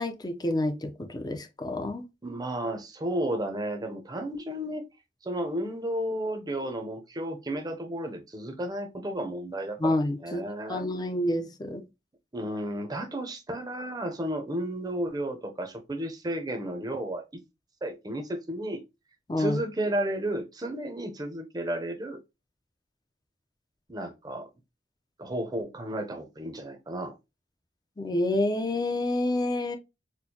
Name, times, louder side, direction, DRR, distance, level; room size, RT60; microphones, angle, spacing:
voice 1, 0.0-2.1 9.8-10.4 10.7-11.8 19.3-19.6 28.0-29.8, left 1 dB, 25° left, 0.5 m, -28 dB
voice 2, 2.2-4.8 5.2-10.8 12.3-17.2 17.8-18.8 19.4-22.2 23.9-24.4 25.2-27.2, right 1 dB, 25° right, 0.6 m, -33 dB
4.4 x 2.1 x 2.8 m
head